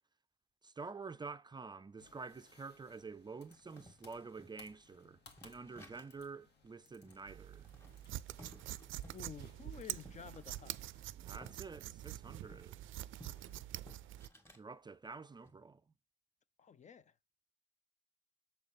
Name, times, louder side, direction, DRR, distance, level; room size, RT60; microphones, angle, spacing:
voice 1, 0.6-7.7 11.1-12.9 14.6-15.8, right 4 dB, 20° right, 0.4 m, -49 dB
sound 1, 2.0-11.1, left 4 dB, 60° left, 1.9 m, -65 dB
sound 2, 3.5-6.3 6.6-6.7 7.0-11.6 11.9-14.7 15.1-15.5, equal, 10° left, 2.3 m, -60 dB
Scissor Cutting T-Shirt Cloth, 7.3-14.3, right 15 dB, 80° right, 0.4 m, -46 dB
voice 2, 9.1-10.8 13.5-13.7 16.6-17.1, left 7 dB, 35° left, 0.5 m, -52 dB
7.1 x 3.9 x 3.5 m
cardioid pair, 90°, 20 cm